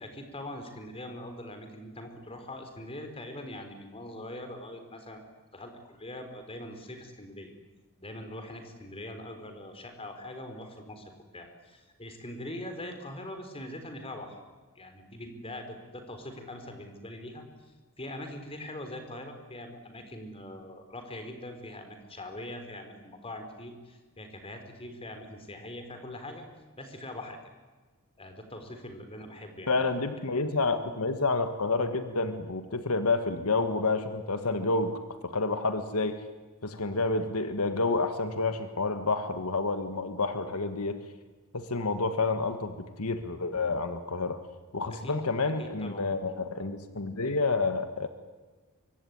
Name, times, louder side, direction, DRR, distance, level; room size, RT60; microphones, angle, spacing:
voice 1, 0.0-5.2 5.5-7.5 8.0-14.4 14.8-17.7 18.0-26.4 26.8-27.4 28.2-29.7 30.6-30.8 44.9-45.1 45.6-46.4, left 1 dB, 25° left, 6 dB, 4.3 m, -42 dB
voice 2, 29.7-36.2 36.6-41.0 41.5-44.4 44.7-48.1, left 3 dB, 75° left, 8 dB, 1.7 m, -29 dB
24.5 x 24.0 x 9.5 m, 1.3 s
head